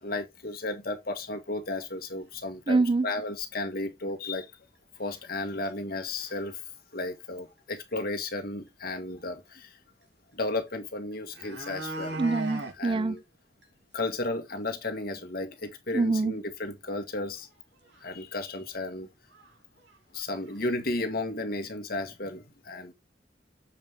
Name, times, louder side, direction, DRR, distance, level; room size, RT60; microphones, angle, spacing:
voice 1, 0.0-4.5 5.0-6.6 6.9-9.8 10.3-12.2 12.7-13.2 13.9-17.5 18.0-19.1 20.1-22.9, left 2 dB, 60° left, 1.8 m, -34 dB
sound 1, 2.3-2.4 2.9-3.0 3.4-3.5 4.4-4.5 5.1-5.4 5.6-5.7 6.1-6.5 7.9-8.0 8.3-8.4 10.7-10.8 11.1-12.8 13.2-13.3 13.6-13.7 14.1-14.2 14.5-14.6 17.4-17.5 17.9-18.0 18.8-18.9 19.3-19.5 19.8-20.6 20.9-21.0, right 2 dB, 90° right, 2.9 m, -39 dB
voice 2, 2.7-3.1 12.2-13.2 15.9-16.3, right 3 dB, 30° right, 0.3 m, -25 dB
7.5 x 5.1 x 3.7 m
head